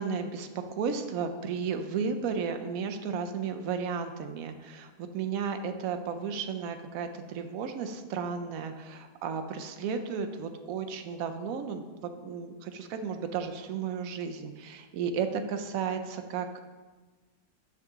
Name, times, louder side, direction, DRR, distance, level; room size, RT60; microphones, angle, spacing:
voice 1, 0.0-16.6, right 6 dB, 70° right, 7 dB, 0.9 m, -34 dB
10.0 x 3.7 x 3.5 m, 1.3 s
omnidirectional pair, 1.7 m